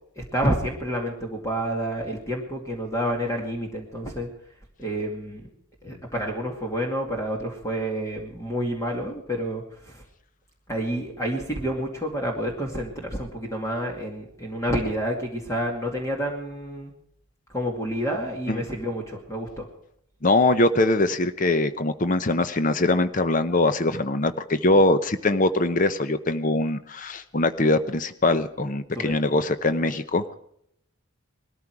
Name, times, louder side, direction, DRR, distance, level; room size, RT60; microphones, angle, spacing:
voice 1, 0.2-4.3 4.8-5.5 5.8-10.0 10.7-16.9 17.5-19.7 28.9-29.1, equal, 15° left, 0 dB, 2.3 m, -29 dB
voice 2, 20.2-30.3, left 2 dB, 35° left, 11 dB, 0.7 m, -22 dB
20.5 x 13.5 x 4.8 m, 0.71 s
head